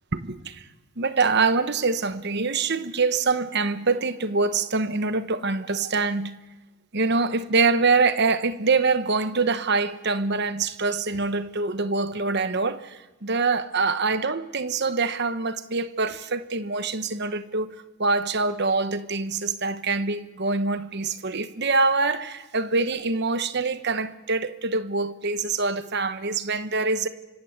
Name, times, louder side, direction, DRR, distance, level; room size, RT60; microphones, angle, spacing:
voice 1, 0.1-0.6 1.0-6.3 6.9-27.1, right 4 dB, 50° right, 1.1 m, -25 dB
26.0 x 25.0 x 8.1 m
head